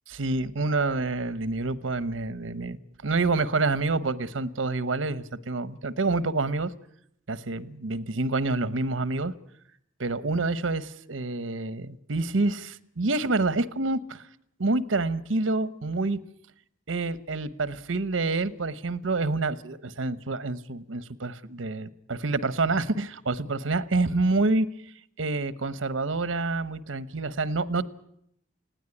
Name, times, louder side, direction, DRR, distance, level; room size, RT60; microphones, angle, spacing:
voice 1, 0.1-2.8 3.0-6.7 7.3-9.3 10.0-14.2 14.6-16.2 16.9-24.7 25.2-27.8, right 3 dB, 90° right, 15 dB, 1.0 m, -27 dB
19.5 x 16.5 x 9.8 m, 0.72 s
head